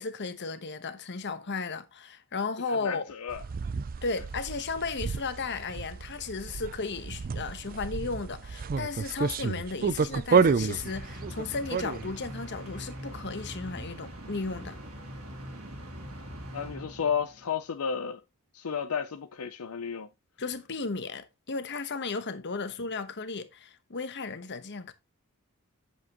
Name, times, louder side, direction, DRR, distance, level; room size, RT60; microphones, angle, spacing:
voice 1, 0.0-3.1 4.0-14.8 20.4-24.9, left 4 dB, 55° left, 1.1 m, -35 dB
voice 2, 2.7-3.4 16.5-18.2 18.5-20.1, left 7 dB, 75° left, 0.6 m, -32 dB
sound 1, 3.3-12.3, right 5 dB, 40° right, 0.4 m, -30 dB
sound 2, 10.7-17.5, equal, 75° right, 2.8 m, -42 dB
8.5 x 7.4 x 3.0 m
head